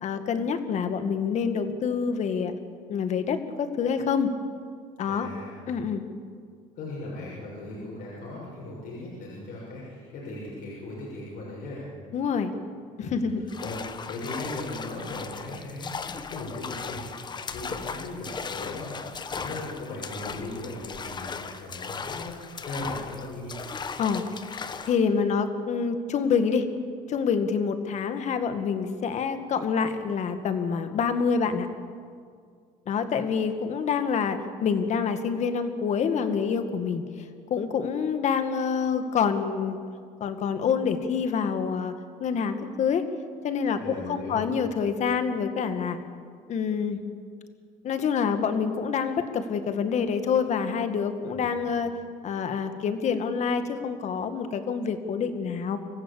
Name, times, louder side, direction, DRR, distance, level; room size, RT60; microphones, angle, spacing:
voice 1, 0.0-2.5 2.9-4.3 5.0-5.3 5.7-6.1 12.1-12.5 13.0-13.4 24.0-24.2 24.9-26.7 27.1-31.7 32.9-37.0 37.5-39.8 40.2-41.9 42.2-43.0 43.4-46.0 46.5-47.0 47.8-51.9 52.2-55.8, left 6 dB, 50° left, 8 dB, 1.9 m, -27 dB
voice 2, 5.0-5.5 6.8-11.8 13.0-13.2 13.6-17.0 17.5-23.5 43.8-44.5 51.3-51.5, left 2 dB, 70° left, -5 dB, 6.7 m, -38 dB
sound 1, 13.5-25.0, left 5 dB, 30° left, 1.2 m, -37 dB
25.5 x 15.0 x 8.6 m, 2.1 s
cardioid pair, 115°, 15 cm